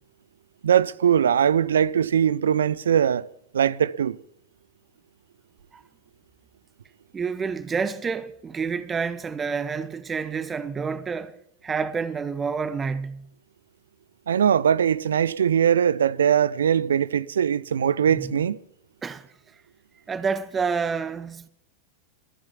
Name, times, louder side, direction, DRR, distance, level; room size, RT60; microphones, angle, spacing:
voice 1, 0.6-3.3 3.5-4.2 14.3-18.6, right 8 dB, 65° right, 0.6 m, -21 dB
voice 2, 7.1-13.3 18.1-18.4 19.0-19.3 20.1-21.5, right 5 dB, 20° right, 0.9 m, -29 dB
22.0 x 8.9 x 5.8 m
figure-of-eight pair, 90°, 0 cm